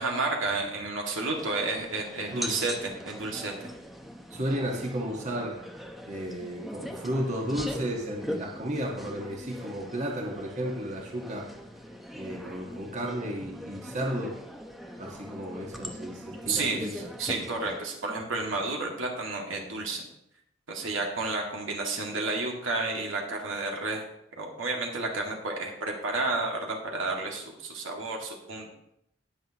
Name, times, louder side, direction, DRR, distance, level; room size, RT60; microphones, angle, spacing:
voice 1, 0.0-3.7 16.5-20.0 20.7-24.1 24.4-28.7, right 3 dB, 80° right, 0 dB, 2.1 m, -31 dB
sound 1, 1.2-17.8, equal, ahead, 0.8 m, -41 dB
voice 2, 4.3-5.6 6.1-11.5 12.1-14.4 15.0-17.1, equal, 40° right, -1 dB, 1.5 m, -33 dB
19.0 x 6.4 x 2.9 m, 0.80 s
head